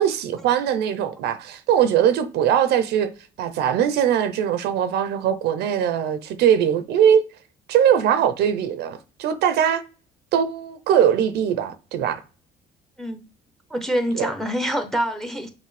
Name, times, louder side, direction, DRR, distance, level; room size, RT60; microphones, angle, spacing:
voice 1, 0.0-3.1 3.4-7.2 7.7-9.8 10.3-12.2 14.1-14.3, right 9 dB, 75° right, 0.6 m, -21 dB
voice 2, 13.7-15.5, equal, ahead, 0.8 m, -25 dB
5.8 x 2.6 x 3.2 m
cardioid pair, 110°, 17 cm